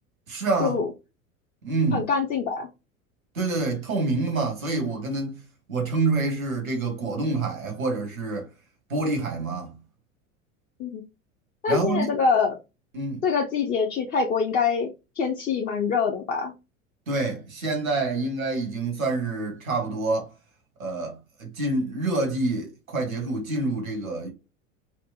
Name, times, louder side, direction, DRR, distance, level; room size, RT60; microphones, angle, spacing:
voice 1, 0.3-0.8 1.6-2.1 3.3-5.4 5.7-8.5 8.9-9.7 11.7-12.1 12.9-13.2 17.1-20.3 20.8-24.3, right 3 dB, 80° right, 1.1 m, -27 dB
voice 2, 1.9-2.7 10.8-11.0 11.6-12.6 13.2-14.9 15.2-16.5, left 5 dB, 25° left, 0.5 m, -24 dB
4.3 x 2.1 x 2.3 m
figure-of-eight pair, 80°, 41 cm